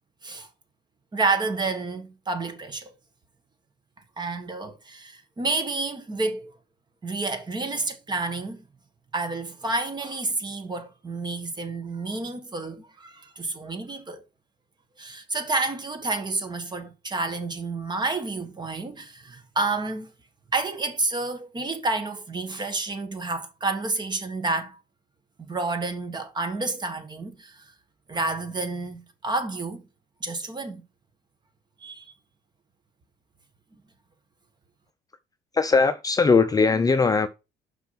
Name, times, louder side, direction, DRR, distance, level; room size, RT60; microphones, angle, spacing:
voice 1, 1.1-2.9 4.2-6.5 7.0-8.6 9.1-14.2 15.0-20.1 20.5-24.8 25.4-27.6 28.1-29.8 30.2-30.8 31.8-32.1, right 3 dB, 25° right, 1.6 m, -29 dB
voice 2, 35.5-37.3, left 4 dB, 20° left, 0.6 m, -20 dB
5.9 x 5.7 x 5.8 m
cardioid pair, 110°, 17 cm